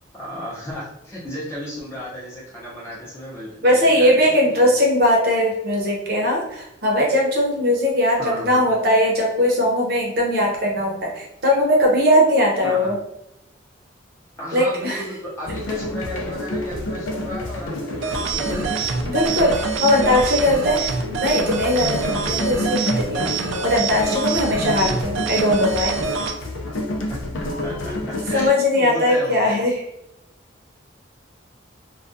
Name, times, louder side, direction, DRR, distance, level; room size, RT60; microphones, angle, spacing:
voice 1, 0.2-4.7 8.2-8.7 12.6-12.9 14.3-18.8 20.8-20.9 27.1-27.2 27.6-29.6, equal, 15° left, -7 dB, 0.6 m, -33 dB
voice 2, 3.6-13.0 14.5-15.0 19.1-23.3 23.6-26.0 28.3-29.8, left 1 dB, 50° right, -2 dB, 0.7 m, -19 dB
sound 1, 15.4-28.5, left 1 dB, 85° left, 0.5 m, -29 dB
sound 2, 18.0-26.3, right 5 dB, 80° right, 0.4 m, -26 dB
2.3 x 2.2 x 2.5 m, 0.86 s
head